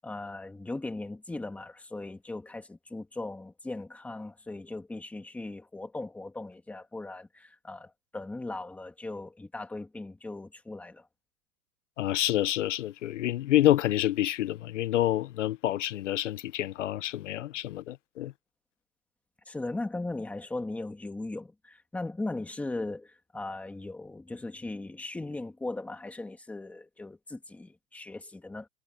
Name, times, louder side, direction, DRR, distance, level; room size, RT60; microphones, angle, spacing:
voice 1, 0.0-11.1 19.5-28.7, left 2 dB, 5° left, 1.7 m, -38 dB
voice 2, 12.0-18.3, left 13 dB, 50° left, 0.5 m, -27 dB
supercardioid pair, 175°, 49 cm